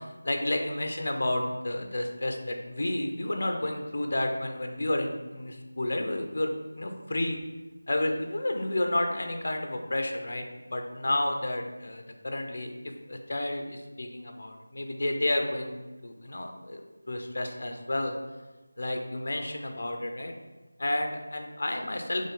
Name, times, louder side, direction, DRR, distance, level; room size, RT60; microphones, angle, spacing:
voice 1, 0.0-7.4 7.9-12.7 13.1-15.7 16.0-16.8 17.1-18.1 18.8-20.3 20.8-22.3, left 1 dB, 55° left, 4 dB, 0.6 m, -31 dB
4.1 x 3.2 x 3.8 m, 1.2 s
figure-of-eight pair, 170°, 0 cm